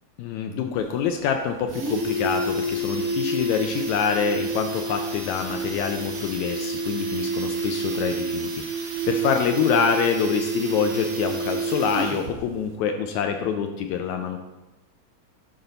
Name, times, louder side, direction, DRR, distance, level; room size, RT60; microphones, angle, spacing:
voice 1, 0.2-14.4, left 7 dB, 80° left, 5 dB, 1.8 m, -26 dB
sound 1, 0.8-0.9 1.2-1.3 1.5-12.4 12.7-12.8, right 2 dB, 55° right, 1.0 m, -29 dB
10.0 x 3.9 x 5.5 m, 1.0 s
omnidirectional pair, 3.7 m